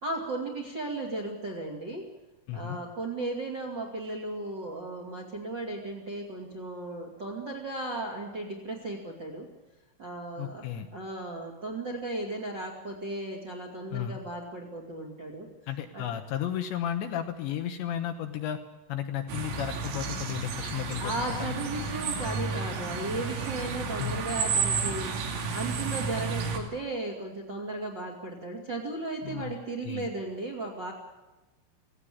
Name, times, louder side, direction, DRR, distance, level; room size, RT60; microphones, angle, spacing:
voice 1, 0.0-2.0 2.5-9.5 10.0-15.5 15.9-16.0 21.0-25.1 25.5-30.9, right 2 dB, 30° right, 1 dB, 2.1 m, -35 dB
voice 2, 10.4-10.9 13.9-14.2 15.7-18.6 18.9-21.5 24.0-24.2 29.2-29.5 29.8-30.1, left 10 dB, 75° left, 6 dB, 3.0 m, -33 dB
sound 1, 19.3-26.6, right 5 dB, 75° right, 5.1 m, -32 dB
18.0 x 17.0 x 8.6 m, 1.1 s
omnidirectional pair, 5.9 m